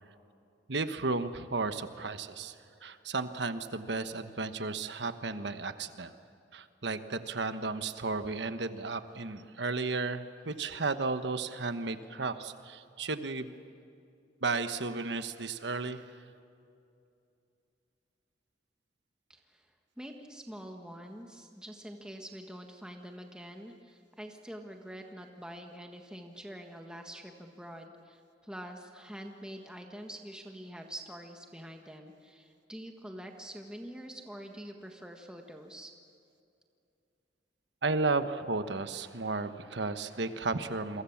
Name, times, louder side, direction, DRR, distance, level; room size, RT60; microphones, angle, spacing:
voice 1, 0.7-2.5 2.8-6.1 6.5-13.6 14.4-16.0 37.8-41.0, right 3 dB, 75° right, 10 dB, 1.2 m, -33 dB
voice 2, 19.3-19.7 20.0-35.9, equal, 5° right, 3 dB, 1.5 m, -46 dB
29.0 x 23.0 x 7.3 m, 2.6 s
head